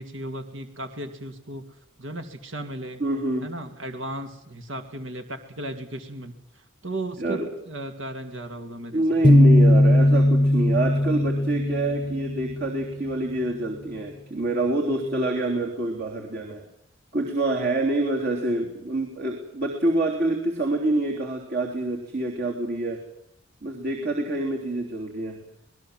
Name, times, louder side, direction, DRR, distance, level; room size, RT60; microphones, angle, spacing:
voice 1, 0.0-1.6 2.0-3.0 3.4-7.4 7.7-9.0 14.8-15.6, right 1 dB, 75° right, 7 dB, 2.4 m, -36 dB
voice 2, 3.0-3.5 7.2-7.5 8.9-16.6 17.1-23.0 23.6-25.4, right 2 dB, 55° right, 0 dB, 3.4 m, -26 dB
sound 1, 9.2-12.9, left 1 dB, 25° left, 0.8 m, -18 dB
26.0 x 19.5 x 7.5 m, 0.75 s
head